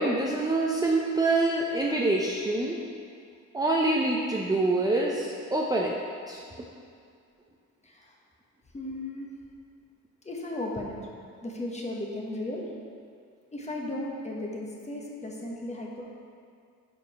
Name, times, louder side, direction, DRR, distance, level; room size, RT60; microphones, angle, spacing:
voice 1, 0.0-2.8 3.5-5.9 6.3-6.4, right 2 dB, 15° right, -3 dB, 0.5 m, -26 dB
voice 2, 7.8-8.1 8.7-9.3 10.2-11.0 11.4-12.7 13.5-16.0, left 1 dB, 20° left, -2 dB, 1.1 m, -35 dB
5.0 x 4.8 x 5.5 m, 2.3 s
cardioid pair, 90°, 30 cm